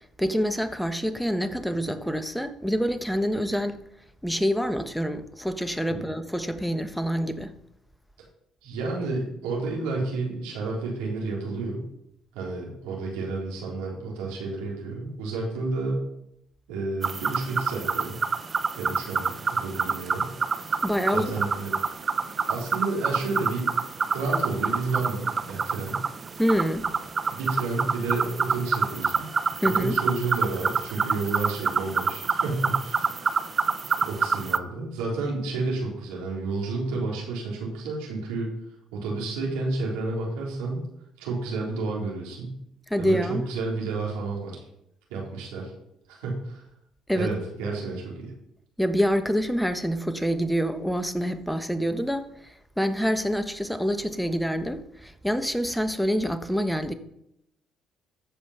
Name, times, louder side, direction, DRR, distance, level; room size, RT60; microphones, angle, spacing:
voice 1, 0.2-3.8 4.2-7.5 20.8-21.3 26.4-26.9 29.6-30.0 42.9-43.4 47.1-47.3 48.8-56.9, equal, ahead, 1.2 m, -26 dB
voice 2, 8.6-11.8 12.3-16.0 16.7-18.2 18.8-20.3 21.1-21.7 22.5-23.7 24.1-26.0 27.3-29.3 29.6-33.7 34.0-38.5 38.9-40.9 41.2-42.6 43.0-44.6 45.1-45.7 46.1-46.6 47.1-48.3, right 3 dB, 90° right, 3.6 m, -31 dB
sound 1, 17.0-34.6, right 5 dB, 40° right, 0.8 m, -27 dB
14.0 x 5.5 x 5.7 m
supercardioid pair, 70°, 0 cm